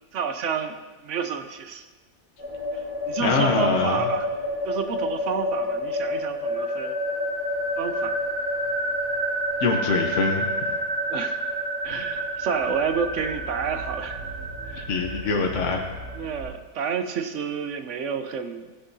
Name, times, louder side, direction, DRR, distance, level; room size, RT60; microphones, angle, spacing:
voice 1, 0.1-0.8 1.0-1.9 2.7-4.3 4.6-6.9 7.8-8.2 11.1-11.4 11.8-14.2 14.6-14.9 16.1-18.7, right 6 dB, 60° right, 8 dB, 0.9 m, -29 dB
sound 1, 2.4-16.4, equal, 5° right, 3.0 m, -29 dB
voice 2, 3.2-4.0 9.6-10.8 11.9-12.0 14.9-15.8, left 4 dB, 55° left, 1 dB, 1.2 m, -24 dB
16.0 x 10.0 x 2.8 m, 1.2 s
omnidirectional pair, 1.6 m